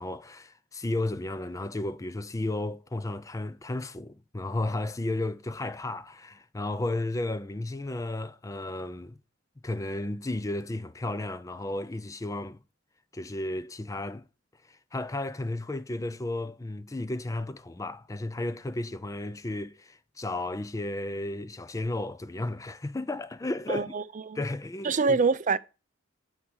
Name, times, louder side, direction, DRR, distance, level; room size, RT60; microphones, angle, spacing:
voice 1, 0.0-9.2 9.6-12.6 13.1-14.3 14.7-23.9 24.3-25.2, left 2 dB, 15° left, 0.4 m, -33 dB
voice 2, 23.7-24.4 24.8-25.6, right 4 dB, 40° right, 0.5 m, -25 dB
7.1 x 4.8 x 6.4 m
head